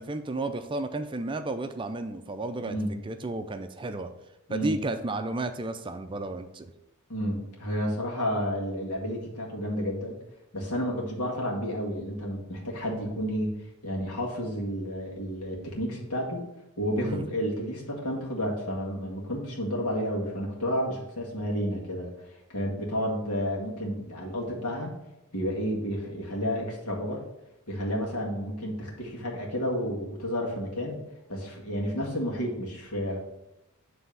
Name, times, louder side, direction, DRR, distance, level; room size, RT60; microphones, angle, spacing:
voice 1, 0.0-2.8 3.0-4.1 4.5-6.7 17.0-17.3, right 2 dB, 20° right, 8 dB, 0.4 m, -32 dB
voice 2, 2.6-2.9 4.5-4.7 7.1-10.2 10.5-13.5 13.8-16.5 16.8-24.9 25.3-27.2 27.7-31.0 31.3-33.2, equal, 85° left, -2 dB, 1.9 m, -31 dB
7.3 x 3.4 x 5.6 m, 0.89 s
head